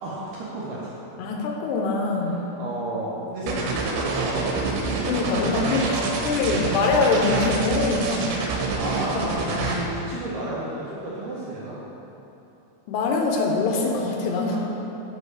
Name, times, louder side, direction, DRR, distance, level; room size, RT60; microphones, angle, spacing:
voice 1, 0.0-0.9 2.3-4.7 5.4-6.3 8.8-11.8 14.5-14.6, right 2 dB, 75° right, -7 dB, 2.1 m, -32 dB
voice 2, 1.2-2.4 3.4-3.5 5.1-5.8 6.2-8.4 9.4-9.8 12.9-14.5, left 3 dB, 80° left, 1 dB, 2.7 m, -23 dB
sound 1, 3.5-9.8, right 3 dB, 90° right, 3.0 m, -27 dB
7.6 x 5.3 x 4.9 m, 3.0 s
omnidirectional pair, 4.8 m